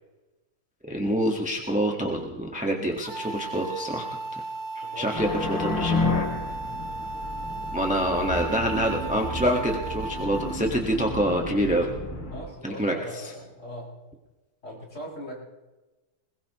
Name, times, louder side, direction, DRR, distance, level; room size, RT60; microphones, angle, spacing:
voice 1, 0.9-4.1 4.3-4.4 4.7-6.0 7.7-11.9 12.6-13.3, equal, 5° right, 0 dB, 1.3 m, -26 dB
sound 1, 3.0-10.6, right 3 dB, 90° right, 2.3 m, -36 dB
voice 2, 4.8-6.2 12.3-13.9 14.6-15.4, equal, 35° left, -4 dB, 6.8 m, -40 dB
sound 2, 5.1-12.4, left 2 dB, 80° left, 3.9 m, -31 dB
21.5 x 21.5 x 3.1 m, 1.1 s
omnidirectional pair, 2.3 m